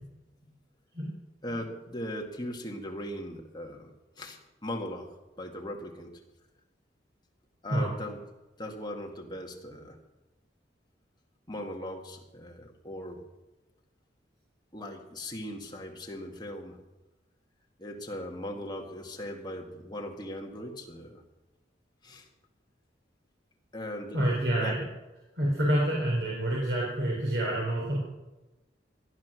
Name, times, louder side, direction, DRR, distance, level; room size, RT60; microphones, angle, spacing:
voice 1, 1.4-3.9 4.2-6.2 7.6-8.2 8.6-10.0 11.5-13.2 14.7-16.8 17.8-21.2 22.0-22.3 23.7-24.8, left 1 dB, 25° left, 1 dB, 2.1 m, -39 dB
voice 2, 24.1-24.7 25.4-28.0, right 1 dB, 75° right, -4 dB, 4.3 m, -27 dB
18.0 x 12.5 x 6.3 m, 1.1 s
head